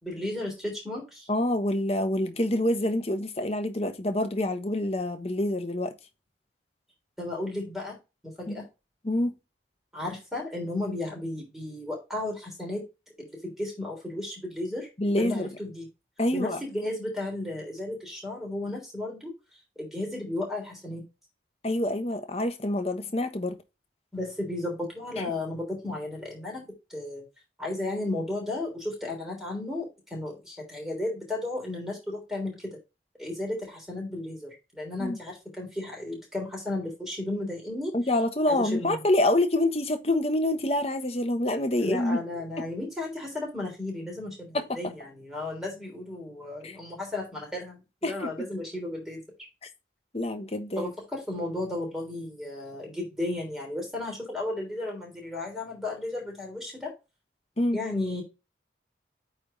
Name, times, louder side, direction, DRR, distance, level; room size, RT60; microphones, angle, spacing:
voice 1, 0.0-1.3 7.2-8.0 8.4-8.6 9.9-12.8 13.3-14.9 15.2-15.9 16.3-19.3 19.7-21.0 24.1-26.6 26.9-27.2 27.6-32.8 33.2-37.9 38.5-39.0 41.8-49.2 50.8-56.9 57.7-58.2, left 2 dB, ahead, 3.3 m, -34 dB
voice 2, 1.3-5.9 8.5-8.6 9.0-9.3 15.0-15.5 16.2-16.6 21.6-23.6 25.2-25.3 35.0-35.2 37.9-42.2 42.6-42.7 44.5-44.9 46.6-46.8 48.0-48.3 50.1-50.9 57.6-57.8, left 1 dB, 35° left, 1.1 m, -26 dB
8.6 x 3.4 x 4.0 m
head